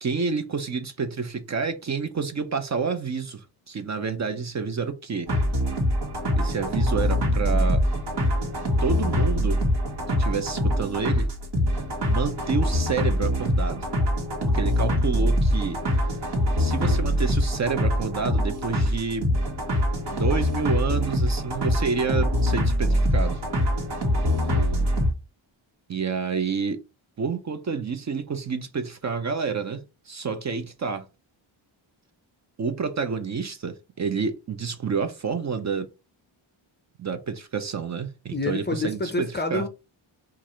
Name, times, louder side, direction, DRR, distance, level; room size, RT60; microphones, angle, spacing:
voice 1, 0.0-5.3 6.4-7.8 8.8-9.6 10.1-11.3 12.1-13.9 14.4-15.8 16.6-19.3 20.1-23.4 25.9-26.8 27.2-31.1 32.6-35.9 37.0-39.6, right 5 dB, 35° right, 0.5 m, -29 dB
sound 1, 5.3-25.1, equal, 55° right, 1.6 m, -24 dB
voice 2, 24.1-24.5 38.3-39.7, left 3 dB, 20° left, 0.5 m, -29 dB
4.6 x 2.5 x 4.2 m
wide cardioid pair, 135°, 48 cm